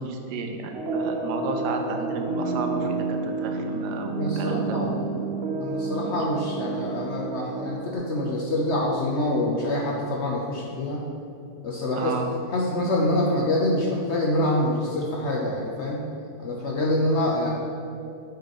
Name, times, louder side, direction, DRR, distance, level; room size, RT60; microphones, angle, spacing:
voice 1, 0.0-4.8 5.2-5.3 6.0-6.2 12.0-12.3, right 4 dB, 80° right, 4 dB, 1.3 m, -32 dB
sound 1, 0.7-8.0, right 3 dB, 45° right, 1.0 m, -30 dB
voice 2, 4.1-5.1 5.6-11.0 11.6-12.1 12.5-16.0 16.4-17.5, left 1 dB, 65° left, -2 dB, 0.7 m, -26 dB
6.5 x 5.0 x 4.1 m, 2.6 s
omnidirectional pair, 1.8 m